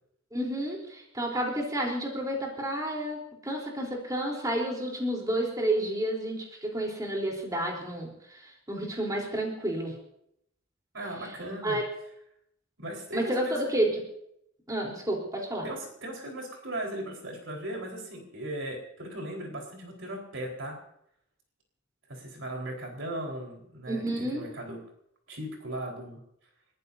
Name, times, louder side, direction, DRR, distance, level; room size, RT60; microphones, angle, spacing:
voice 1, 0.3-8.4 8.7-9.9 11.6-11.9 13.1-13.9 14.7-15.7 23.9-24.4, right 1 dB, 20° right, -1 dB, 3.8 m, -30 dB
voice 2, 10.9-11.8 12.8-13.6 15.6-20.8 22.1-24.8 25.3-26.2, right 1 dB, 70° right, 0 dB, 4.5 m, -37 dB
30.0 x 15.0 x 2.8 m, 0.74 s
head